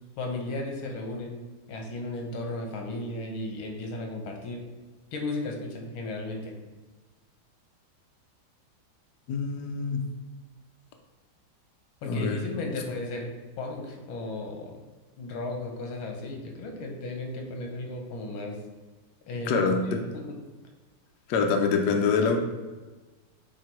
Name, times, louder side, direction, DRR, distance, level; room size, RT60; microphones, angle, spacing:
voice 1, 0.2-1.4 1.7-4.6 5.1-6.5 12.0-13.3 13.6-14.8 15.2-18.6 19.3-20.2, left 2 dB, 85° left, 2 dB, 1.8 m, -35 dB
voice 2, 9.3-10.0 12.0-12.5 19.4-20.0 21.3-22.4, left 5 dB, 65° left, 3 dB, 1.1 m, -25 dB
7.5 x 2.7 x 4.6 m, 1.2 s
omnidirectional pair, 2.2 m